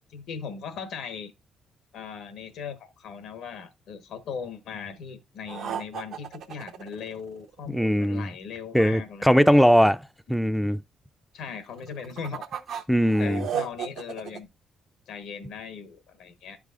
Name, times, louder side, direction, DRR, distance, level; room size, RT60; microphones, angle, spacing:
voice 1, 0.1-1.3 1.9-9.4 11.3-12.4 13.2-14.5 15.1-16.6, left 6 dB, 85° left, 1.1 m, -38 dB
sound 1, 5.5-7.7 11.8-14.4, right 8 dB, 75° right, 0.7 m, -34 dB
voice 2, 7.7-8.3 8.7-10.0 10.3-10.8 12.9-13.4, equal, ahead, 0.3 m, -20 dB
11.0 x 4.9 x 2.4 m
cardioid pair, 90°, 0 cm